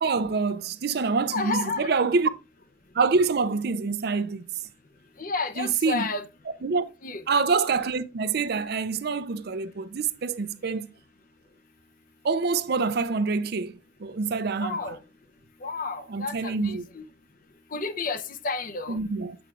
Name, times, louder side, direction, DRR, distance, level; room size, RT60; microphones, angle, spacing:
voice 1, 0.0-2.3 2.9-4.5 5.6-6.1 6.6-6.8 7.3-10.9 12.2-14.8 16.1-16.9 18.9-19.4, right 4 dB, 55° right, 0.5 m, -26 dB
voice 2, 1.3-1.9 5.2-6.2 7.0-7.2 14.6-15.0 15.6-17.1 17.7-19.0, left 4 dB, 45° left, 0.6 m, -31 dB
8.5 x 5.9 x 2.4 m
head